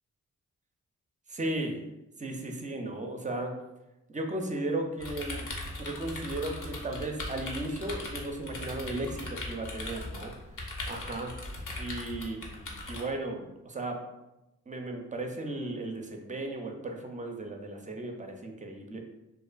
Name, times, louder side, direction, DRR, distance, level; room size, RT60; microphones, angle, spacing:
voice 1, 1.3-1.8 2.2-3.5 4.1-5.5 5.8-10.3 10.9-11.3 11.8-14.0 14.7-19.0, right 2 dB, 20° right, 4 dB, 0.4 m, -35 dB
sound 1, 5.0-13.0, left 2 dB, 60° left, 0.7 m, -39 dB
2.4 x 2.4 x 2.3 m, 0.95 s
supercardioid pair, 40°, 35 cm